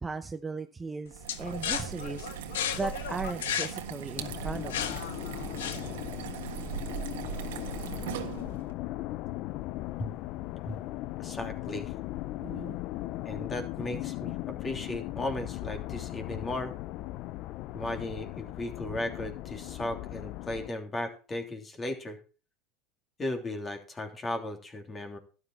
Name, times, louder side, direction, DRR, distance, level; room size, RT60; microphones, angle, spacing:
voice 1, 0.0-5.0 12.4-12.8, right 4 dB, 15° right, 0.8 m, -37 dB
sound 1, 1.1-8.7, right 9 dB, 80° right, 1.4 m, -39 dB
sound 2, 1.3-6.1, left 9 dB, 85° left, 1.2 m, -35 dB
sound 3, 4.2-20.7, left 17 dB, 60° left, 0.5 m, -38 dB
voice 2, 11.2-11.9 13.2-16.7 17.7-22.2 23.2-25.2, left 1 dB, 25° left, 3.1 m, -36 dB
12.5 x 10.5 x 4.2 m
hypercardioid pair, 95°, 0 cm